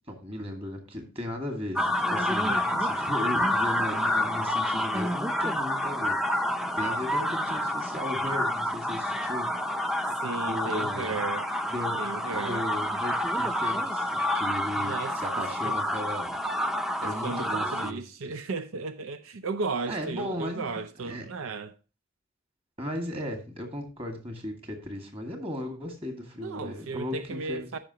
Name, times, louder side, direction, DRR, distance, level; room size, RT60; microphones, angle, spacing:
voice 1, 0.1-6.4 6.8-9.5 10.4-11.1 11.7-12.0 12.3-16.4 17.0-18.0 19.9-20.7 21.0-21.3 22.8-27.8, left 1 dB, 30° right, 2.1 m, -36 dB
sound 1, 1.8-17.9, left 1 dB, ahead, 0.5 m, -28 dB
voice 2, 2.5-2.8 10.2-11.5 12.0-12.7 14.8-15.7 17.0-21.7 26.4-27.8, right 4 dB, 85° right, 0.6 m, -35 dB
13.5 x 5.7 x 2.9 m
head